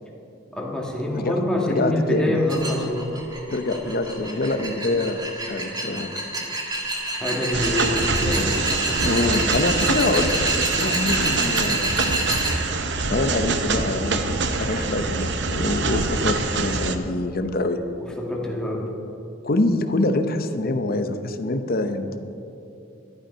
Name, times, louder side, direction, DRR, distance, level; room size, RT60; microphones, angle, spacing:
voice 1, 0.5-3.1 7.2-8.5 18.2-18.8, left 1 dB, 5° left, -2 dB, 1.8 m, -25 dB
voice 2, 1.7-2.4 3.5-6.1 9.0-12.2 13.1-17.8 19.4-22.2, left 2 dB, 50° left, 8 dB, 0.8 m, -25 dB
sound 1, 2.5-12.5, right 1 dB, 20° right, 1.7 m, -27 dB
sound 2, 7.5-17.0, right 3 dB, 60° right, 0.8 m, -25 dB
12.0 x 11.5 x 5.6 m, 2.8 s
head